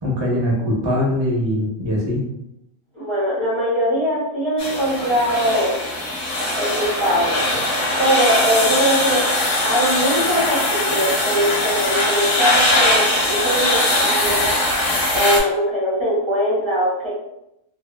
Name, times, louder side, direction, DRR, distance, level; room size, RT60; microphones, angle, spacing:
voice 1, 0.0-2.2, left 1 dB, 45° right, -3 dB, 0.3 m, -21 dB
voice 2, 2.9-5.7 6.5-7.5 8.0-9.3 9.6-14.5 15.1-17.1, equal, 25° right, -7 dB, 0.7 m, -21 dB
sound 1, 4.6-15.4, left 1 dB, 55° left, 0.7 m, -20 dB
2.7 x 2.3 x 2.2 m, 0.83 s
omnidirectional pair, 1.6 m